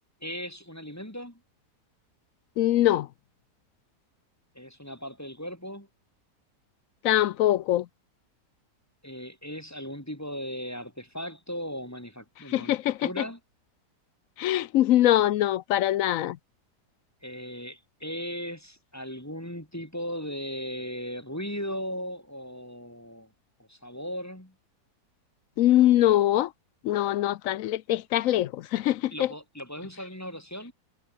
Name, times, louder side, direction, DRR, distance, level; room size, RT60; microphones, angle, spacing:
voice 1, 0.2-1.4 4.6-5.9 9.0-13.4 17.2-23.3 23.6-24.5 29.1-30.7, equal, 10° left, 3.6 m, -37 dB
voice 2, 2.6-3.1 7.0-7.9 12.5-13.2 14.4-16.4 25.6-26.5 26.8-29.3, left 13 dB, 70° left, 0.9 m, -23 dB
omnidirectional pair, 1.7 m